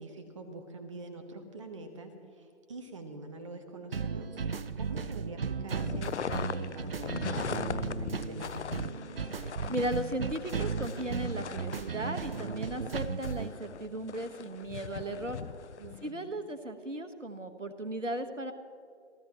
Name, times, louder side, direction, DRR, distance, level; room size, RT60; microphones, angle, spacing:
voice 1, 0.0-4.4 4.7-9.1 15.8-16.4, right 2 dB, 25° right, 7 dB, 1.1 m, -45 dB
sound 1, 3.9-13.5, right 5 dB, 50° right, 0.6 m, -35 dB
sound 2, 5.8-16.1, left 7 dB, 70° left, 0.5 m, -41 dB
sound 3, 7.7-9.1, right 2 dB, 70° right, 1.8 m, -43 dB
voice 2, 9.7-15.4 16.0-18.5, right 1 dB, 90° right, 9 dB, 1.4 m, -36 dB
28.5 x 12.5 x 3.0 m, 2.4 s
figure-of-eight pair, 150°, 36 cm